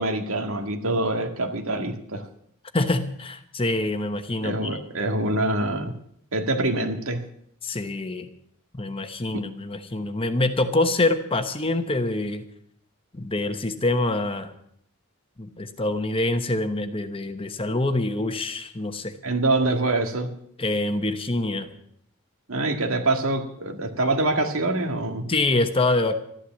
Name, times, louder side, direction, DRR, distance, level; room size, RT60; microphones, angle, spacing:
voice 1, 0.0-2.3 4.4-5.9 6.3-7.2 9.3-9.4 19.2-20.3 22.5-25.3, right 2 dB, 70° right, 6 dB, 1.8 m, -25 dB
voice 2, 2.7-4.8 7.6-8.3 8.8-12.4 13.1-14.5 15.4-19.1 20.6-21.7 25.3-26.2, left 2 dB, 25° left, 8 dB, 1.0 m, -25 dB
13.5 x 11.5 x 7.4 m, 0.69 s
head